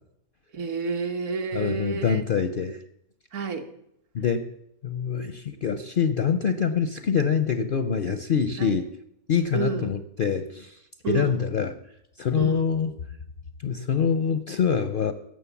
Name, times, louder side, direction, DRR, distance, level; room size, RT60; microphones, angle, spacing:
voice 1, 0.5-2.2 3.3-3.7 8.6-8.8 9.5-9.9 11.0-11.4 12.4-12.7, right 5 dB, 60° right, 5 dB, 1.4 m, -30 dB
voice 2, 1.5-2.8 4.1-4.5 4.8-8.9 9.3-10.8 11.1-11.8 12.2-12.9 13.6-15.1, left 7 dB, 55° left, 11 dB, 0.6 m, -25 dB
16.5 x 6.4 x 7.1 m, 0.77 s
omnidirectional pair, 1.5 m